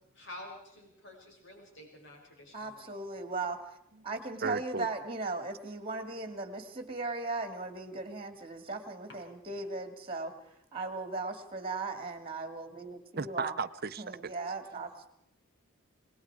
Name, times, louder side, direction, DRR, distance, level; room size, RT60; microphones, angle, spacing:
voice 1, 0.1-2.9 9.1-9.2, left 1 dB, 55° left, 0 dB, 6.2 m, -49 dB
voice 2, 2.5-3.6 4.0-10.4 10.7-13.5 14.0-15.1, right 3 dB, 25° right, 7 dB, 2.4 m, -37 dB
voice 3, 4.4-4.9 13.2-14.0, right 5 dB, 45° right, 14 dB, 0.7 m, -34 dB
27.0 x 20.0 x 4.9 m, 0.78 s
head